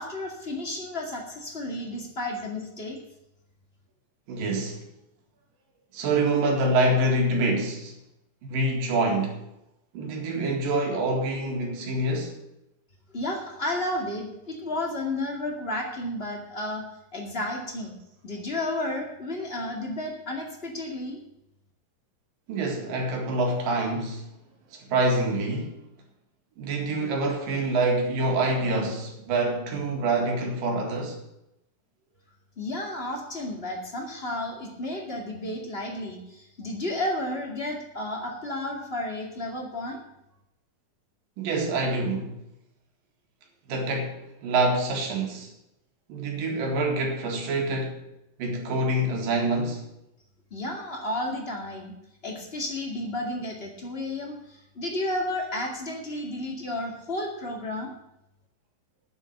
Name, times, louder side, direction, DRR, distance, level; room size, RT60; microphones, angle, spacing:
voice 1, 0.0-3.0 13.1-16.8 17.1-18.0 18.2-21.2 32.6-40.0 50.5-51.9 52.2-57.9, left 1 dB, 20° left, 1.7 m, -32 dB
voice 2, 4.3-4.8 5.9-7.9 8.4-9.4 9.9-12.4 22.5-24.3 24.7-25.8 26.6-31.2 41.4-42.4 43.7-45.5 46.1-48.0 48.4-49.9, right 2 dB, 75° right, 3.7 m, -26 dB
9.5 x 7.4 x 9.2 m
omnidirectional pair, 4.0 m